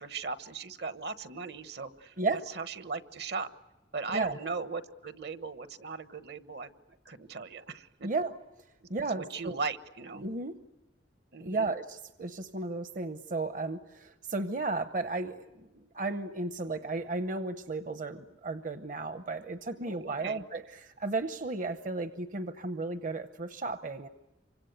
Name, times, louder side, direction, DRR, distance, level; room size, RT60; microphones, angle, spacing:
voice 1, 0.0-3.5 3.9-6.7 7.0-8.1 8.8-8.9 9.2-10.2 11.3-11.7 19.7-20.4, right 4 dB, 65° right, 12 dB, 1.2 m, -38 dB
voice 2, 8.0-8.3 8.9-9.6 10.1-10.5 11.4-24.1, right 3 dB, 45° right, 10 dB, 0.9 m, -34 dB
27.0 x 25.0 x 8.1 m, 1.0 s
head